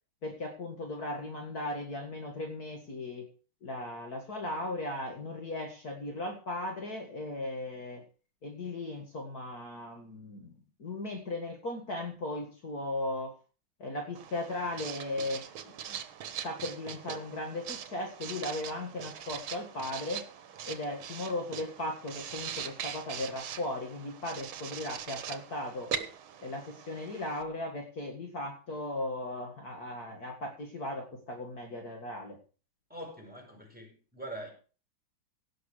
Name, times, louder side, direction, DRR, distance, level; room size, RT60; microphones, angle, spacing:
voice 1, 0.2-3.3 3.6-8.0 8.4-10.5 10.8-13.4 13.8-16.0 16.4-20.3 20.6-25.9 26.4-32.4, left 1 dB, 50° left, 2.4 m, -37 dB
Writing, 14.2-27.4, right 8 dB, 80° right, 1.9 m, -42 dB
voice 2, 32.9-34.5, right 1 dB, 5° right, 4.8 m, -43 dB
17.0 x 6.5 x 6.3 m
omnidirectional pair, 2.2 m